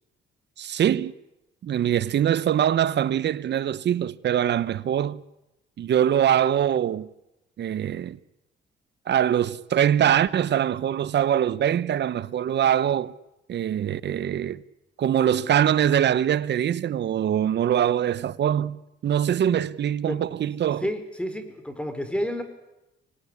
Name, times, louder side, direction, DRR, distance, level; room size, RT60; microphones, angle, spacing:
voice 1, 0.6-1.1 1.6-5.2 5.8-7.1 7.6-8.2 9.1-13.1 13.5-14.6 15.0-20.8, right 10 dB, 60° right, 1.0 m, -23 dB
voice 2, 20.8-22.4, equal, 5° left, 4.5 m, -30 dB
25.5 x 18.5 x 9.8 m
cardioid pair, 90°, 20 cm